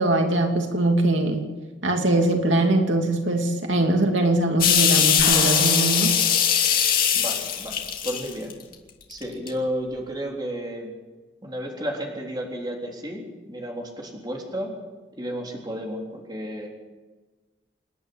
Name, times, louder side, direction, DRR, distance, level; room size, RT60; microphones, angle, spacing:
voice 1, 0.0-1.4 1.8-6.1, right 2 dB, 90° right, 3 dB, 2.7 m, -22 dB
sound 1, 4.6-8.7 9.2-9.5, left 8 dB, 50° left, 2.7 m, -21 dB
sound 2, 5.2-8.0, left 2 dB, 75° left, 5.9 m, -34 dB
voice 2, 7.1-8.5 9.1-10.9 11.4-14.7 15.2-16.7, equal, 20° right, -1 dB, 3.8 m, -32 dB
28.5 x 11.0 x 8.6 m, 1.3 s
head